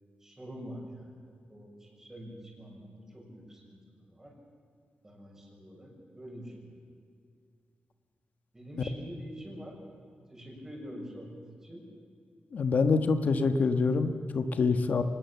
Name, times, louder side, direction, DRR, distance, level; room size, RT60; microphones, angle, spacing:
voice 1, 0.2-4.3 5.0-6.7 8.5-9.8 10.3-11.8, equal, 15° right, 0 dB, 6.3 m, -46 dB
voice 2, 12.5-15.0, left 4 dB, 55° left, 9 dB, 1.4 m, -26 dB
24.5 x 20.0 x 7.2 m, 2.2 s
wide cardioid pair, 125°, 3 cm